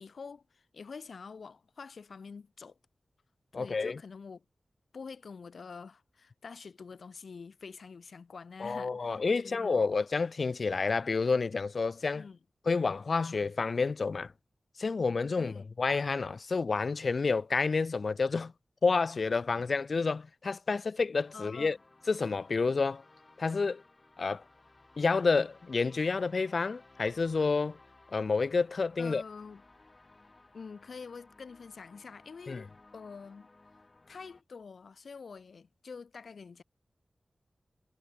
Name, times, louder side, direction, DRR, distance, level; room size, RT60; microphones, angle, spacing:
voice 1, 0.0-2.8 3.5-4.4 4.9-9.7 12.1-12.4 15.4-15.7 21.3-21.7 29.0-29.6 30.5-33.5 34.1-36.6, left 5 dB, 75° left, 5.8 m, -46 dB
voice 2, 3.5-4.0 8.6-12.2 12.7-14.3 14.8-18.5 18.8-21.8 22.1-23.0 23.4-23.8 24.2-24.4 25.0-27.8 28.1-29.2 32.5-32.6, left 4 dB, 60° left, 0.3 m, -29 dB
sound 1, 21.2-34.4, left 2 dB, 35° left, 7.0 m, -60 dB
wide cardioid pair, 120°, 0 cm